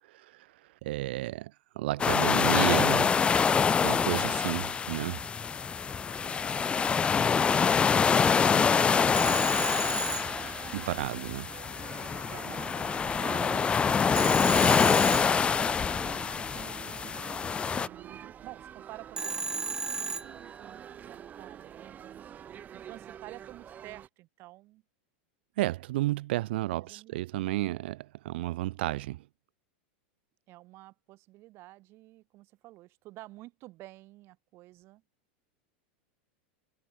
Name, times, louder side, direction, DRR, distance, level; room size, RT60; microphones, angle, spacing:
voice 1, 0.1-0.5 0.8-3.2 3.8-5.2 10.7-11.5 25.6-29.2, right 17 dB, 70° right, 1.8 m, -32 dB
sound 1, 2.0-17.9, left 6 dB, 20° left, 0.9 m, -26 dB
sound 2, 7.5-24.1, right 9 dB, 30° right, 1.9 m, -46 dB
Telephone, 9.2-11.1 14.2-16.0 19.2-20.8, right 4 dB, 10° right, 1.2 m, -35 dB
voice 2, 11.9-24.8 26.8-27.3 30.5-35.0, right 18 dB, 45° right, 6.5 m, -51 dB
supercardioid pair, 125°, 6 cm